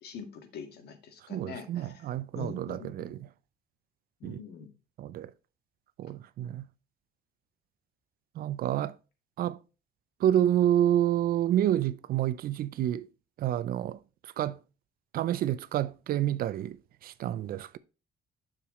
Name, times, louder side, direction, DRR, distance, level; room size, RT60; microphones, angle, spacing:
voice 1, 0.0-2.0 2.3-3.2 4.2-4.7, left 5 dB, 70° left, 1.9 m, -44 dB
voice 2, 1.3-3.3 4.2-4.4 5.0-5.3 6.0-6.7 8.4-9.0 9.4-9.6 10.2-13.1 13.4-14.6 15.1-16.8 17.0-17.8, right 11 dB, 60° right, 0.5 m, -29 dB
7.1 x 6.6 x 3.1 m
cardioid pair, 110°, 17 cm